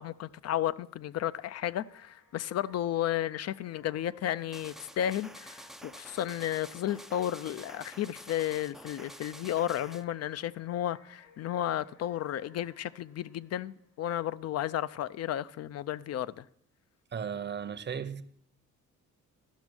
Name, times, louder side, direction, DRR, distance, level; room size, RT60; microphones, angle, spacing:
voice 1, 0.0-16.4, left 11 dB, 55° left, 0.5 m, -33 dB
sound 1, 1.1-14.5, left 3 dB, 75° left, 3.3 m, -62 dB
sound 2, 4.5-10.0, right 1 dB, ahead, 0.4 m, -49 dB
voice 2, 17.1-18.2, right 7 dB, 35° right, 0.7 m, -35 dB
12.5 x 6.0 x 6.2 m
cardioid pair, 90°, 30 cm